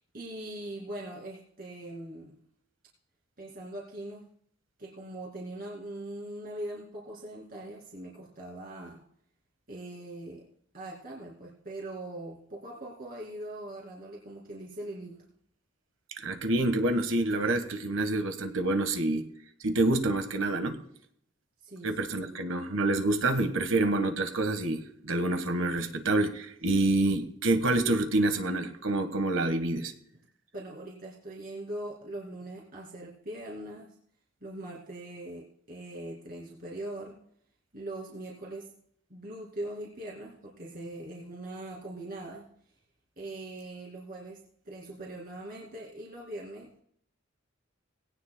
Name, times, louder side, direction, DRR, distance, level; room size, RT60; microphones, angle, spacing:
voice 1, 0.1-2.4 3.4-4.3 4.8-9.0 9.7-10.4 10.7-15.3 21.6-21.9 22.2-22.3 30.5-34.0 34.4-37.2 37.7-38.7 39.1-42.4 43.2-46.8, right 1 dB, 45° right, -2 dB, 2.4 m, -41 dB
voice 2, 16.2-19.3 19.6-20.8 21.8-29.9, right 2 dB, 80° right, 7 dB, 1.4 m, -27 dB
18.5 x 17.0 x 2.2 m, 0.66 s
head